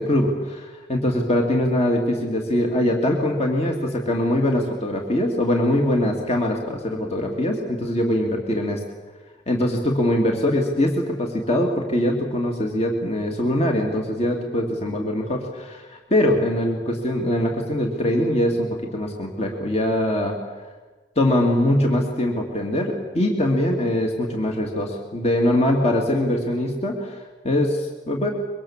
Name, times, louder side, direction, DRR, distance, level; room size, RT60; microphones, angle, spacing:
voice 1, 0.0-8.8 9.5-20.4 21.2-28.3, left 1 dB, 35° left, 2 dB, 2.6 m, -22 dB
25.0 x 23.5 x 7.4 m, 1.3 s
head